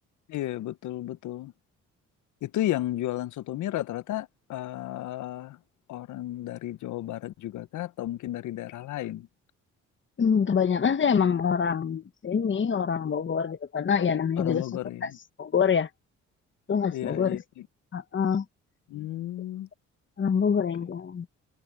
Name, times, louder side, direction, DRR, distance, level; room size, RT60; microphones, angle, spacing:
voice 1, 0.3-1.5 2.4-5.6 5.9-9.3 14.4-15.2 16.9-17.6 18.9-19.7, left 14 dB, 75° left, 0.8 m, -33 dB
voice 2, 10.2-14.6 15.0-15.1 15.4-15.9 16.7-17.4 17.9-18.4 20.2-21.3, left 6 dB, 40° left, 1.4 m, -25 dB
cardioid pair, 90°, 30 cm